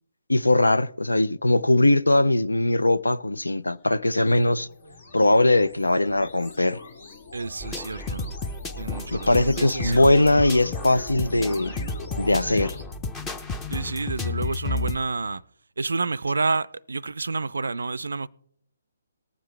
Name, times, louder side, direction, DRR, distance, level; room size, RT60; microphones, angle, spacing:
voice 1, 0.3-4.7 5.1-6.8 9.1-11.7 12.2-12.7, left 2 dB, 85° left, 0.5 m, -20 dB
sound 1, 3.8-12.8, left 3 dB, 60° left, 2.0 m, -42 dB
voice 2, 7.3-8.3 8.8-10.4 12.5-12.7 13.7-15.4 15.8-18.3, right 4 dB, 75° right, 0.4 m, -29 dB
sound 2, 7.6-15.0, left 3 dB, 15° left, 0.7 m, -32 dB
19.5 x 7.5 x 3.3 m
figure-of-eight pair, 140°, 0 cm